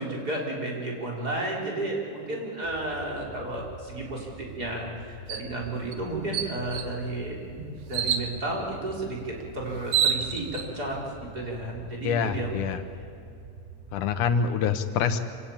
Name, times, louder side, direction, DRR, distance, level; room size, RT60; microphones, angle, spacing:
voice 1, 0.0-12.7, right 2 dB, 30° right, -3 dB, 4.5 m, -33 dB
sound 1, 2.6-14.4, right 2 dB, ahead, 6.1 m, -46 dB
sound 2, 5.3-5.5 5.9-6.0 6.3-6.9 7.9-8.3 9.4-9.5 9.8-10.7, right 8 dB, 65° right, 2.1 m, -27 dB
voice 2, 12.0-12.8 13.9-15.2, left 6 dB, 85° left, 8 dB, 2.6 m, -25 dB
26.5 x 17.5 x 8.9 m, 2.6 s
omnidirectional pair, 3.5 m